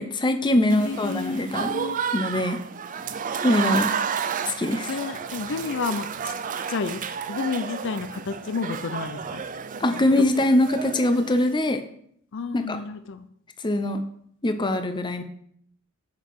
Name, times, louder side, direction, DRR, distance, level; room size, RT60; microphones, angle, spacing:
voice 1, 0.0-1.7 2.1-2.6 3.4-3.9 4.5-4.9 9.8-11.8 12.5-12.8 13.6-14.0 14.4-15.2, left 1 dB, 20° left, 8 dB, 0.6 m, -22 dB
voice 2, 0.6-2.0 4.9-6.3 6.7-7.0 7.3-9.4 10.2-10.3 12.3-13.3, left 4 dB, 60° left, 11 dB, 0.5 m, -31 dB
Applause / Crowd, 0.7-11.6, right 6 dB, 40° right, 0.4 m, -31 dB
7.4 x 5.9 x 4.7 m, 0.67 s
head